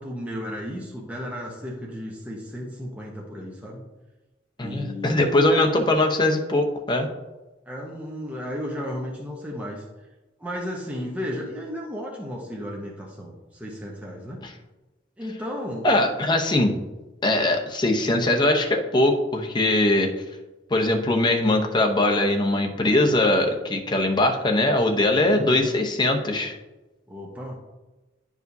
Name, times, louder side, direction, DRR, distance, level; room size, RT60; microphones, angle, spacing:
voice 1, 0.0-3.8 4.6-5.9 7.7-9.8 10.4-14.4 15.2-15.9 25.2-25.7 27.1-27.6, equal, 10° right, -3 dB, 0.8 m, -34 dB
voice 2, 4.6-7.1 14.4-14.5 15.8-16.8 17.2-20.1 20.7-26.6, left 1 dB, 25° left, 3 dB, 0.8 m, -21 dB
10.5 x 4.9 x 2.7 m, 1.1 s
head